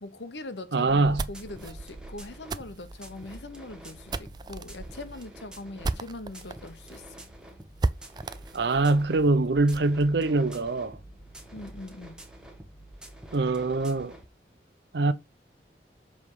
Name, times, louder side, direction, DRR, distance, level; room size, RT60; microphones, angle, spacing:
voice 1, 0.0-7.0 11.5-12.2, left 2 dB, 90° left, 1.1 m, -41 dB
voice 2, 0.7-1.3 8.5-11.0 13.3-14.2 14.9-15.1, right 3 dB, 75° right, 0.7 m, -23 dB
sound 1, 0.9-14.3, right 1 dB, 5° right, 1.2 m, -47 dB
sound 2, 0.9-6.6 6.9-7.0 7.3-7.4 7.8-9.9, right 3 dB, 25° right, 0.3 m, -35 dB
7.2 x 3.6 x 4.8 m
head